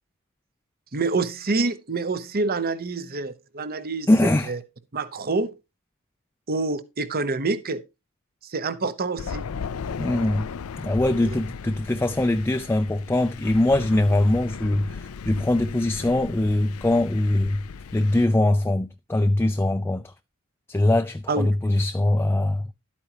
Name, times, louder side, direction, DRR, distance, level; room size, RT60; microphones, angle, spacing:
voice 1, 0.9-4.6 4.9-5.6 6.5-7.8 8.4-9.5 21.3-21.5, right 3 dB, 45° right, 0.9 m, -27 dB
voice 2, 4.1-4.5 10.0-10.5 10.8-17.6 17.9-20.1 20.7-22.7, left 1 dB, 10° left, 0.4 m, -22 dB
Thunder, 9.2-18.3, left 6 dB, 75° left, 0.5 m, -36 dB
12.0 x 8.6 x 3.0 m
head